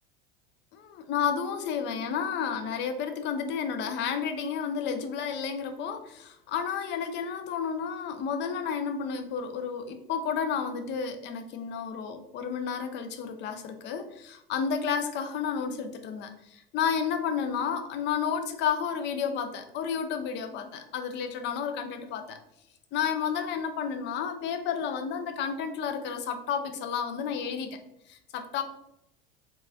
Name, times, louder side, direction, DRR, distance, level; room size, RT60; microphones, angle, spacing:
voice 1, 0.7-22.4 22.9-27.8 28.1-28.6, left 7 dB, 35° left, 7 dB, 0.4 m, -31 dB
2.9 x 2.3 x 2.6 m, 0.81 s
hypercardioid pair, 75°, 30 cm